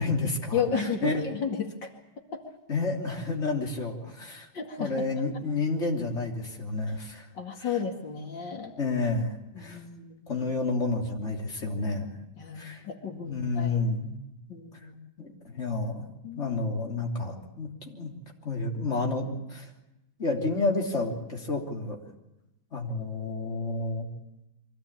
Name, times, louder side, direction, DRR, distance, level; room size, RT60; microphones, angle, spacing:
voice 1, 0.0-1.2 2.7-4.5 4.8-7.2 7.6-7.7 8.8-9.8 10.3-12.1 12.5-12.8 13.3-14.2 15.2-16.0 16.3-18.1 18.4-19.7 20.2-22.0 22.7-24.1, left 3 dB, 35° left, 0 dB, 3.4 m, -30 dB
voice 2, 0.5-1.9 2.3-2.4 4.5-4.9 7.3-8.7 9.5-10.2 12.4-13.9 14.5-15.0 16.2-16.6, left 6 dB, 80° left, 2 dB, 2.9 m, -33 dB
24.5 x 16.5 x 8.7 m, 0.92 s
omnidirectional pair, 2.0 m